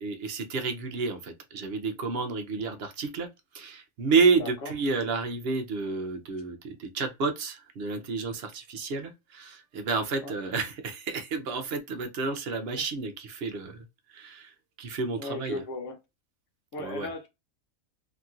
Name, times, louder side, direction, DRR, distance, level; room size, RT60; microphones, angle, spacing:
voice 1, 0.0-3.3 3.5-13.8 14.1-14.5 14.8-15.6 16.8-17.1, right 4 dB, 55° right, 0.8 m, -30 dB
voice 2, 4.4-4.7 10.2-10.4 15.2-16.0 16.7-17.3, left 2 dB, 65° left, 1.2 m, -36 dB
2.9 x 2.7 x 2.4 m
omnidirectional pair, 1.4 m